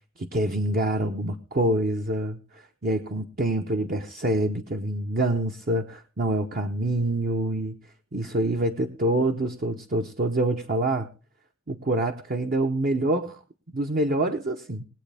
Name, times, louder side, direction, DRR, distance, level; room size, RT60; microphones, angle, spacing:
voice 1, 0.2-7.8 8.1-11.1 11.7-13.4 13.7-14.8, right 1 dB, 45° right, 5 dB, 0.8 m, -26 dB
21.0 x 8.2 x 3.4 m, 0.35 s
head